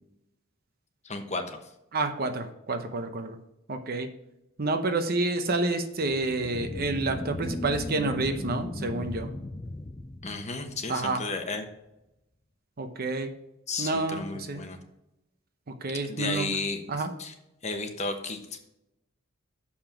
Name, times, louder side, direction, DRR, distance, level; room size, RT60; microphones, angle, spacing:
voice 1, 1.0-1.6 10.2-11.7 13.7-14.8 16.1-16.8 17.2-17.3 17.6-18.6, left 3 dB, 35° left, 5 dB, 1.1 m, -33 dB
voice 2, 1.9-3.4 3.7-4.1 4.6-9.3 10.9-11.2 12.8-13.3 13.8-14.6 15.8-16.5 16.9-17.1, right 2 dB, 50° right, 7 dB, 0.8 m, -29 dB
sound 1, 6.0-11.0, left 2 dB, 20° left, 0.4 m, -37 dB
6.9 x 5.7 x 6.0 m, 0.87 s
head